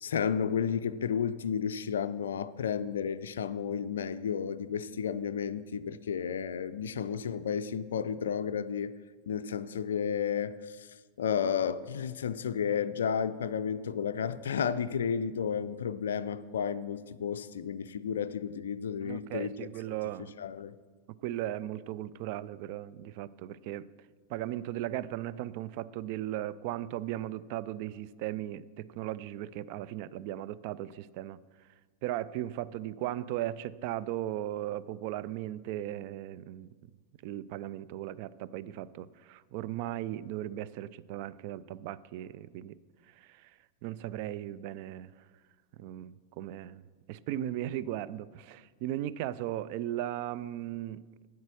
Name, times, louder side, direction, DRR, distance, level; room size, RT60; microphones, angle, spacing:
voice 1, 0.0-8.9 9.3-10.9 11.2-19.5 20.4-20.8, left 7 dB, 65° left, 0.3 m, -32 dB
voice 2, 19.0-20.3 21.2-23.9 24.3-31.4 32.0-36.7 37.2-42.8 43.2-43.5 43.8-45.1 45.8-46.8 47.1-51.0, right 13 dB, 45° right, 0.3 m, -37 dB
8.5 x 8.1 x 6.2 m
figure-of-eight pair, 90°, 0 cm